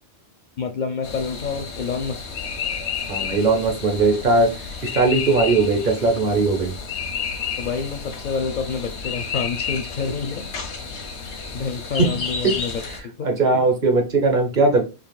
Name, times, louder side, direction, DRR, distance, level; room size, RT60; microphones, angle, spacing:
voice 1, 0.6-2.2 7.6-10.5 11.2-13.3, left 5 dB, 60° left, 0.5 m, -28 dB
sound 1, 1.0-13.0, left 6 dB, 90° left, 1.1 m, -31 dB
voice 2, 3.1-4.5 4.8-6.7 12.0-12.1 13.2-14.8, right 3 dB, 50° right, 0.9 m, -19 dB
5.2 x 2.8 x 2.3 m
omnidirectional pair, 1.1 m